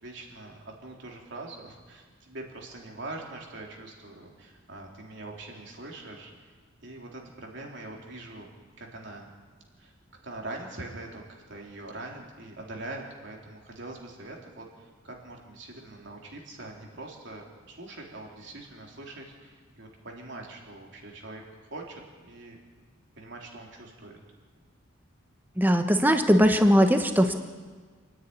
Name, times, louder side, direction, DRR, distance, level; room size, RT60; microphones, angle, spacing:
voice 1, 0.0-6.5 6.8-8.5 8.8-9.3 9.8-9.9 10.2-11.2 11.5-22.6 23.2-24.1, right 2 dB, 60° right, -1 dB, 3.7 m, -43 dB
voice 2, 25.6-27.3, equal, 10° right, 6 dB, 1.1 m, -20 dB
28.5 x 10.0 x 9.7 m, 1.5 s
head